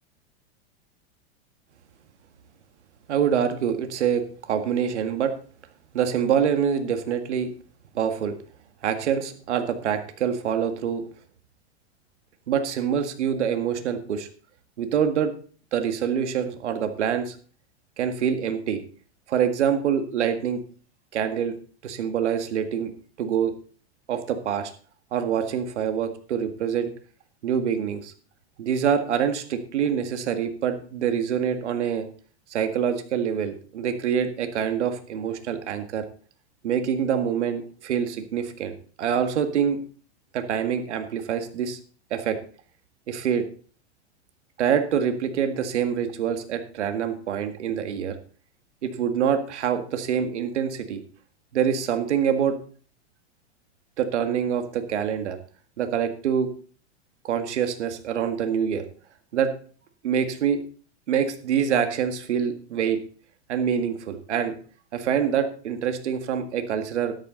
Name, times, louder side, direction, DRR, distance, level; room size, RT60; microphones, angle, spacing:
voice 1, 3.1-5.3 5.9-7.5 7.9-8.4 8.8-11.0 12.5-14.3 14.8-15.3 15.7-17.4 18.0-18.8 19.3-20.6 21.1-21.6 21.8-23.5 24.1-24.7 25.1-26.9 27.4-28.1 28.6-32.1 32.5-36.0 36.6-39.8 40.3-41.8 42.1-42.4 43.1-43.4 44.6-48.2 48.8-51.0 51.5-52.6 54.0-55.4 55.8-56.5 57.2-58.8 59.3-59.5 60.0-60.6 61.1-63.0 63.5-64.6 64.9-67.1, right 8 dB, 80° right, 7 dB, 1.9 m, -25 dB
13.0 x 10.5 x 3.9 m, 0.43 s
hypercardioid pair, 115°, 34 cm